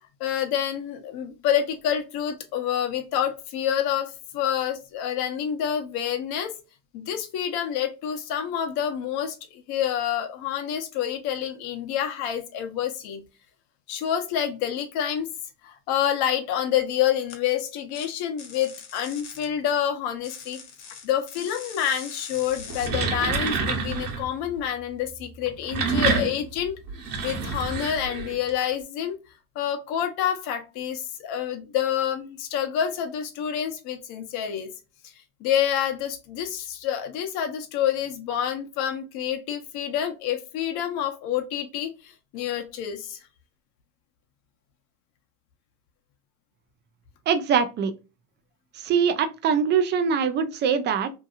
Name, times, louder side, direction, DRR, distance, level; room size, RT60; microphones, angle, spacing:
voice 1, 0.2-6.5 6.9-13.2 13.9-15.3 15.6-20.6 21.0-26.8 27.2-29.2 29.5-34.7 35.4-43.2, left 9 dB, 55° left, 0.9 m, -28 dB
sound 1, 17.3-17.4 17.9-18.0 18.4-19.4 20.2-22.9, left 6 dB, 85° left, 1.1 m, -41 dB
sound 2, 22.6-24.3 25.4-28.5, right 4 dB, 45° right, 1.1 m, -27 dB
voice 2, 47.3-47.9 48.8-51.1, right 7 dB, 25° right, 0.3 m, -23 dB
2.8 x 2.6 x 2.4 m
supercardioid pair, 110°, 45 cm